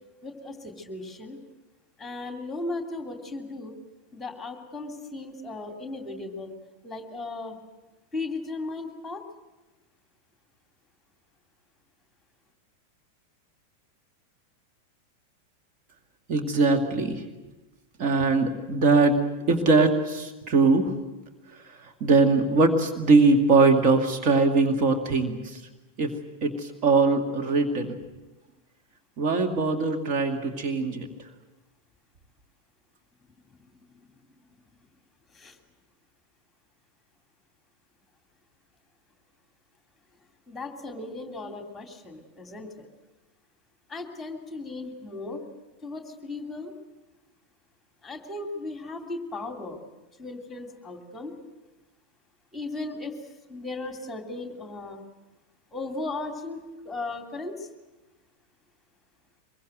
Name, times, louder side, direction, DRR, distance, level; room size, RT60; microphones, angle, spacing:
voice 1, 0.2-1.4 2.0-3.8 4.1-6.5 6.8-7.6 8.1-9.2 35.3-35.6 40.5-42.9 43.9-45.4 45.8-46.7 48.0-49.8 50.2-51.3 52.5-53.1 53.5-55.0 55.7-57.7, left 2 dB, 10° left, 4 dB, 3.0 m, -36 dB
voice 2, 16.3-17.2 18.0-19.2 19.5-20.9 22.0-25.6 26.0-26.1 26.4-28.0 29.2-31.1, right 3 dB, 40° right, 4 dB, 2.1 m, -21 dB
24.0 x 22.0 x 7.9 m, 1.1 s
figure-of-eight pair, 90°, 0 cm